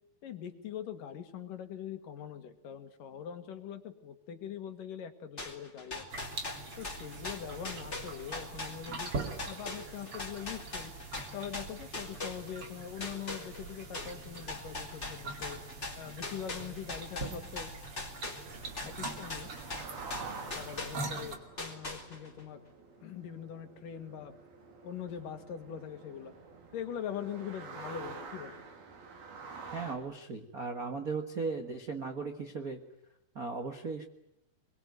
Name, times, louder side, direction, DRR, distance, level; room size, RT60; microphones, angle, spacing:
voice 1, 0.2-6.3 6.8-9.1 9.5-10.9 11.3-15.6 16.0-17.7 18.8-19.5 20.5-22.6 23.0-24.3 24.8-26.3 26.7-28.6, left 9 dB, 65° left, 8 dB, 3.2 m, -42 dB
sound 1, 5.4-12.7 13.0-21.3 21.6-22.4, left 2 dB, 20° left, 3.8 m, -41 dB
sound 2, 6.1-21.4, right 3 dB, 40° right, 3.2 m, -43 dB
sound 3, 18.4-30.0, right 4 dB, 80° right, 5.1 m, -48 dB
voice 2, 29.7-32.8 33.3-34.1, right 4 dB, 60° right, 6 dB, 0.9 m, -37 dB
23.5 x 22.5 x 9.4 m, 0.82 s
omnidirectional pair, 4.3 m